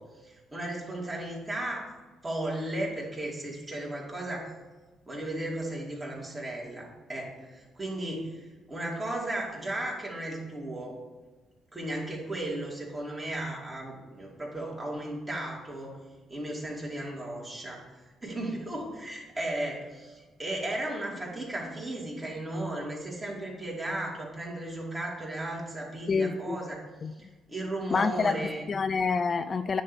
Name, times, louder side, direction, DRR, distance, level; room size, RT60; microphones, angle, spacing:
voice 1, 0.0-1.9 2.2-4.5 5.1-11.0 11.7-16.0 16.3-26.8 27.1-28.6, right 1 dB, 20° right, -3 dB, 2.7 m, -35 dB
voice 2, 26.1-26.6 27.0-27.1 27.9-28.3 28.7-29.8, left 5 dB, 40° left, 10 dB, 0.3 m, -27 dB
9.8 x 3.9 x 7.0 m, 1.3 s
cardioid pair, 90°, 0 cm